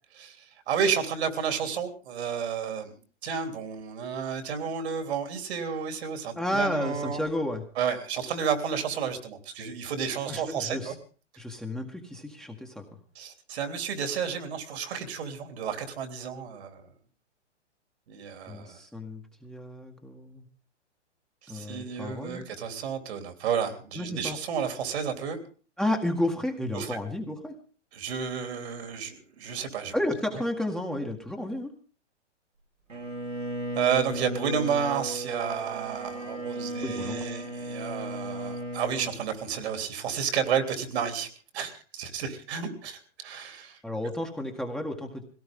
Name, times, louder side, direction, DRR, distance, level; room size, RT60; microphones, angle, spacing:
voice 1, 0.1-7.2 7.8-10.9 13.2-16.9 18.1-18.8 21.4-25.4 26.7-27.0 27.9-29.9 33.7-41.3 41.5-43.8, right 7 dB, 60° right, 7 dB, 3.5 m, -31 dB
voice 2, 6.4-7.6 10.3-10.9 11.4-12.8 18.5-20.5 21.5-22.4 24.0-24.4 25.8-27.6 29.9-31.7 36.8-37.2 43.8-45.2, left 1 dB, ahead, 2 dB, 1.8 m, -32 dB
Bowed string instrument, 32.9-39.2, right 1 dB, 90° right, 5.7 m, -35 dB
21.0 x 17.5 x 3.8 m, 0.38 s
hypercardioid pair, 115°, 36 cm